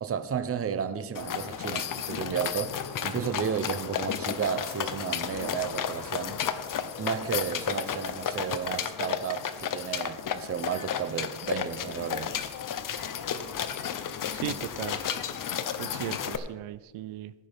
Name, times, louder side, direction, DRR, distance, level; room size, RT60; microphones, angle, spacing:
voice 1, 0.0-2.7 3.0-6.4 7.0-12.3, right 7 dB, 30° right, 0.7 m, -32 dB
sound 1, 1.1-16.4, left 8 dB, 45° left, 0.8 m, -33 dB
voice 2, 14.3-15.0 15.8-17.3, right 14 dB, 85° right, 0.6 m, -36 dB
16.0 x 9.5 x 3.5 m
cardioid pair, 135°, 48 cm